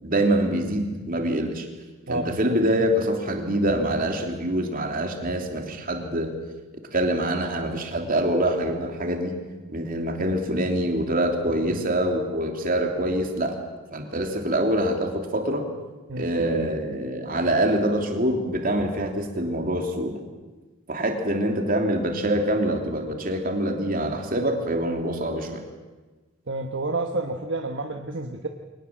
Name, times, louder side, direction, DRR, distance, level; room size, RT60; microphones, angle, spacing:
voice 1, 0.0-1.7 2.1-6.4 6.9-9.4 9.7-13.6 13.9-15.6 16.2-20.2 20.9-25.6, right 1 dB, 40° right, 3 dB, 3.0 m, -25 dB
voice 2, 2.1-2.6 16.1-16.3 26.5-28.5, right 2 dB, 55° right, 4 dB, 1.3 m, -29 dB
23.0 x 19.5 x 7.5 m, 1.2 s
head